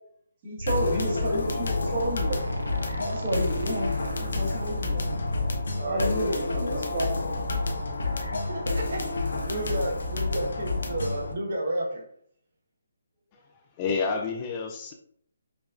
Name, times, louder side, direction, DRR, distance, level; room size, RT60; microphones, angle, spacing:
voice 1, 0.4-2.4 3.0-5.1 5.8-7.6, equal, 35° right, -4 dB, 1.4 m, -31 dB
sound 1, 0.6-5.7, left 1 dB, 80° right, 0.6 m, -34 dB
sound 2, 0.7-11.3, left 3 dB, 75° left, 0.6 m, -30 dB
voice 2, 5.7-6.8 8.5-12.0, right 1 dB, 65° right, 0 dB, 1.1 m, -32 dB
voice 3, 13.8-14.9, left 4 dB, 25° left, 2 dB, 0.4 m, -29 dB
5.1 x 2.3 x 2.4 m, 0.64 s
hypercardioid pair, 160°, 0 cm